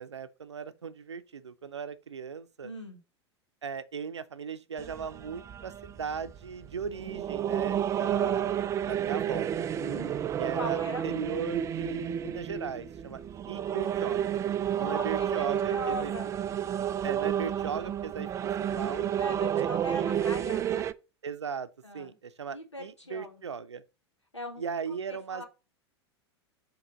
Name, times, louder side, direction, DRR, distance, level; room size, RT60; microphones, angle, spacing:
voice 1, 0.0-2.7 3.6-9.5 10.4-13.2 13.5-14.4 14.8-16.1 17.0-19.1 19.6-20.1 21.2-21.7 21.9-23.8 24.6-25.4, right 6 dB, 80° right, 0.6 m, -38 dB
voice 2, 2.6-3.0 9.8-11.1 14.7-16.3 19.1-20.9 21.8-22.1 22.5-23.4 24.3-24.6 25.1-25.5, equal, 85° left, 1.5 m, -39 dB
sound 1, 4.8-20.9, right 9 dB, 20° right, 0.4 m, -31 dB
7.5 x 3.0 x 5.2 m
figure-of-eight pair, 85°, 14 cm